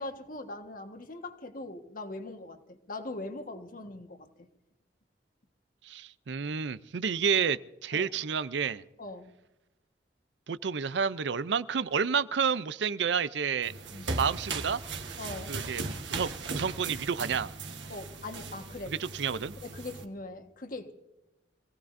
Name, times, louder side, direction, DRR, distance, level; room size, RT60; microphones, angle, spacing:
voice 1, 0.0-4.5 7.9-8.1 9.0-9.3 13.9-14.2 15.2-15.6 17.9-18.9 19.6-20.9, left 2 dB, 50° left, 1.5 m, -41 dB
voice 2, 5.8-8.8 10.5-13.7 14.2-14.8 15.5-15.8 16.1-17.5 19.0-19.5, right 6 dB, 75° right, 0.5 m, -30 dB
sound 1, 13.6-20.0, right 3 dB, 90° right, 1.6 m, -38 dB
26.5 x 17.0 x 2.6 m
head